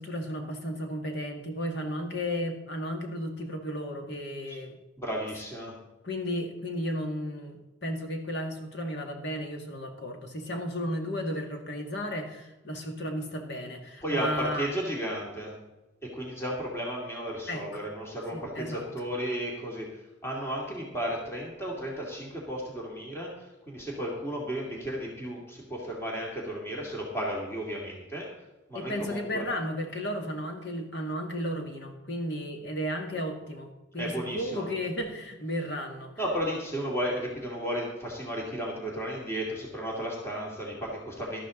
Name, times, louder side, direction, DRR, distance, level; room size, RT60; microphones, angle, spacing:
voice 1, 0.0-4.7 6.0-14.7 17.5-17.8 18.3-18.8 28.7-36.1, equal, 55° left, 3 dB, 2.0 m, -34 dB
voice 2, 5.0-5.7 14.0-15.5 16.0-19.9 20.2-28.3 28.7-29.5 34.0-34.7 36.2-41.5, equal, 15° left, -3 dB, 2.5 m, -34 dB
12.5 x 12.5 x 3.9 m, 1.0 s
head